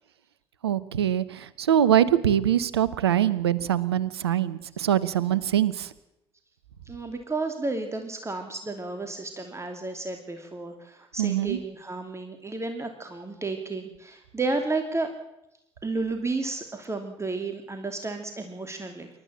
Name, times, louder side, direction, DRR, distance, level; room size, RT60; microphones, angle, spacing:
voice 1, 0.6-5.9 11.2-11.6, right 10 dB, 80° right, 18 dB, 0.8 m, -23 dB
voice 2, 6.9-15.1 15.8-19.1, right 3 dB, 20° right, 5 dB, 2.9 m, -32 dB
28.0 x 13.0 x 7.5 m, 0.86 s
figure-of-eight pair, 45°, 13 cm